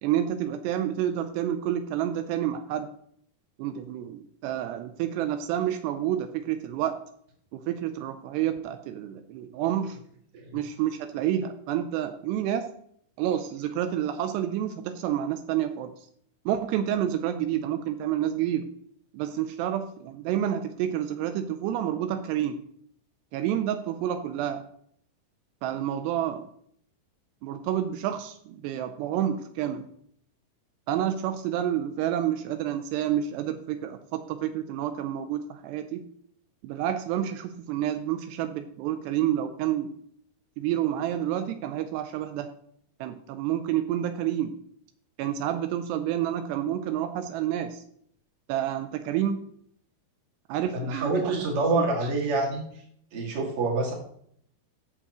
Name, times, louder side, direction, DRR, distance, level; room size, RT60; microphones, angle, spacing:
voice 1, 0.0-2.9 3.6-7.0 7.5-10.0 10.5-12.7 13.2-15.9 16.5-18.7 19.1-22.6 23.3-24.6 25.6-26.5 27.4-29.9 30.9-36.0 36.6-39.9 40.6-42.5 43.0-44.5 45.2-47.8 48.5-49.5 50.5-51.8, right 11 dB, 85° right, 9 dB, 2.7 m, -29 dB
voice 2, 50.7-52.6 53.1-53.9, right 3 dB, 40° right, -2 dB, 2.6 m, -26 dB
14.0 x 7.0 x 3.0 m, 0.66 s
omnidirectional pair, 4.9 m